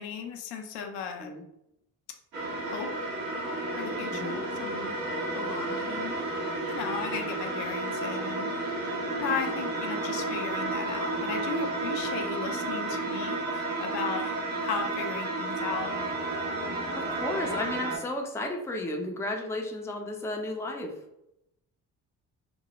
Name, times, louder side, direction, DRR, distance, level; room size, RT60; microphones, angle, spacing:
voice 1, 0.0-1.3 2.7-2.9 3.8-4.9 5.3-6.1 6.7-8.5 9.2-15.9, left 6 dB, 60° left, 4 dB, 0.6 m, -36 dB
sound 1, 2.3-18.0, right 2 dB, 75° right, 1.4 m, -32 dB
voice 2, 17.0-20.9, left 1 dB, 5° left, 1 dB, 0.5 m, -33 dB
3.0 x 2.2 x 3.0 m, 0.82 s
hypercardioid pair, 50°, 46 cm